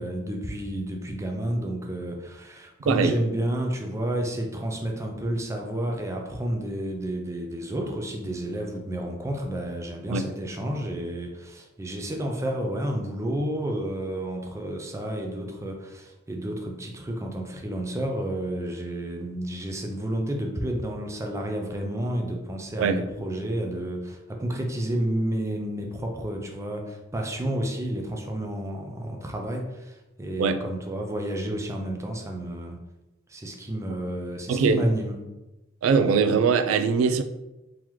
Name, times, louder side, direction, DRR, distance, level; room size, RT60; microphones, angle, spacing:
voice 1, 0.0-32.8 33.3-35.1, right 1 dB, 15° right, 2 dB, 0.5 m, -30 dB
voice 2, 2.9-3.2 10.1-10.3 22.8-23.0 30.4-30.6 34.5-34.8 35.8-37.2, right 5 dB, 85° right, 8 dB, 0.3 m, -21 dB
3.8 x 3.0 x 3.0 m, 1.0 s
head